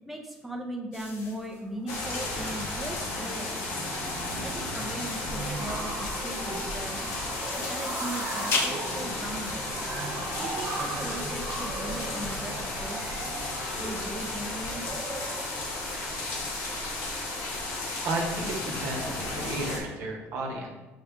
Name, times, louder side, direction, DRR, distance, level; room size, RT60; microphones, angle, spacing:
voice 1, 0.0-3.7 4.4-7.0 7.3-9.6 10.4-13.0 13.8-14.9, right 1 dB, 5° right, -1 dB, 0.5 m, -38 dB
sound 1, 0.9-10.5, left 3 dB, 55° left, 0.8 m, -37 dB
sound 2, 1.6-1.9 2.2-2.5 2.8-17.7, right 3 dB, 40° right, 0.6 m, -39 dB
sound 3, 1.9-19.8, left 2 dB, 85° left, 1.0 m, -34 dB
voice 2, 18.0-20.7, right 2 dB, 65° right, 0 dB, 0.9 m, -33 dB
6.2 x 2.3 x 3.6 m, 1.2 s
cardioid pair, 120°, 5 cm